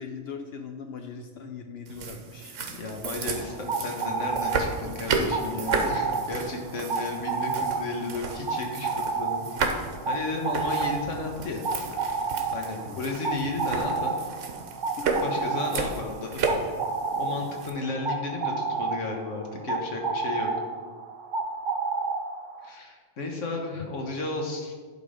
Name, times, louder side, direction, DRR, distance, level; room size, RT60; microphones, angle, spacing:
voice 1, 0.0-2.6 4.9-5.6 12.7-13.0 15.0-15.2, left 5 dB, 60° left, 5 dB, 0.8 m, -40 dB
sound 1, 1.9-17.7, right 4 dB, 85° right, 1.2 m, -33 dB
voice 2, 2.8-9.5 10.1-11.6 12.5-14.1 15.2-16.8 17.2-20.5 22.6-24.8, left 3 dB, 80° left, 2 dB, 1.6 m, -33 dB
sound 2, 3.2-22.7, right 4 dB, 50° right, 0.8 m, -31 dB
11.0 x 3.9 x 5.1 m, 1.5 s
omnidirectional pair, 1.3 m